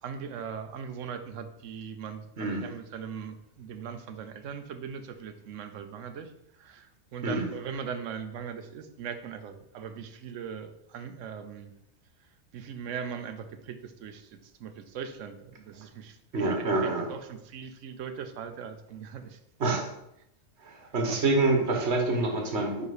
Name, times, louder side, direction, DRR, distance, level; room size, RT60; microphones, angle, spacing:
voice 1, 0.0-11.7 12.2-19.4 21.1-21.2, right 7 dB, 80° right, 9 dB, 1.0 m, -40 dB
voice 2, 2.4-2.7 7.2-7.5 16.3-17.1 19.6-19.9 20.6-22.9, right 2 dB, 60° right, 3 dB, 1.4 m, -27 dB
5.0 x 4.9 x 4.9 m, 0.83 s
omnidirectional pair, 1.3 m